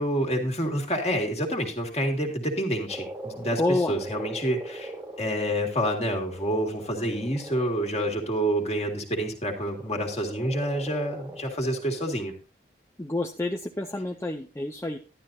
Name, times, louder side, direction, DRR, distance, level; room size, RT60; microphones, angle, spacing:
voice 1, 0.0-4.9 5.2-12.3, equal, 35° left, 2 dB, 2.1 m, -28 dB
Frog, 2.9-8.8 9.6-12.2, right 1 dB, 10° right, 1.3 m, -42 dB
voice 2, 3.6-3.9 13.0-15.0, left 2 dB, 15° left, 4 dB, 0.5 m, -28 dB
12.0 x 11.5 x 2.7 m, 0.33 s
head